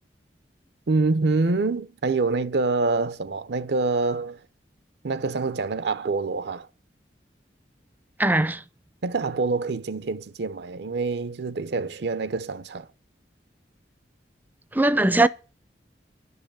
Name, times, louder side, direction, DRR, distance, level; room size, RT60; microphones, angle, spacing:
voice 1, 0.9-4.4 5.0-6.7 9.0-12.9, right 3 dB, 70° right, 0.6 m, -26 dB
voice 2, 8.2-8.6 14.7-15.3, right 2 dB, 10° right, 0.5 m, -20 dB
11.0 x 5.6 x 8.6 m
head